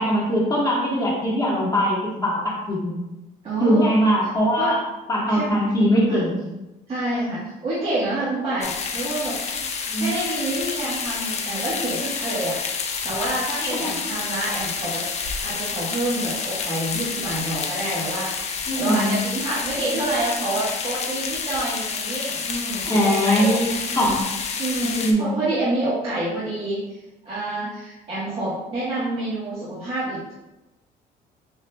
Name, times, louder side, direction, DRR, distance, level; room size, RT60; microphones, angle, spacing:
voice 1, 0.0-2.9 3.6-4.8 5.1-6.4 9.9-10.1 13.6-13.7 18.7-19.1 22.8-24.1 24.8-25.4, equal, 20° left, -5 dB, 1.4 m, -21 dB
voice 2, 3.4-4.0 4.6-4.8 5.3-5.5 6.1-6.3 6.9-9.4 9.9-12.6 13.0-24.0 24.6-26.8 27.2-30.3, right 1 dB, 35° right, -10 dB, 1.3 m, -28 dB
sound 1, 8.6-25.1, left 5 dB, 40° left, 0.5 m, -29 dB
7.0 x 2.7 x 2.2 m, 1.0 s
cardioid pair, 130°, 18 cm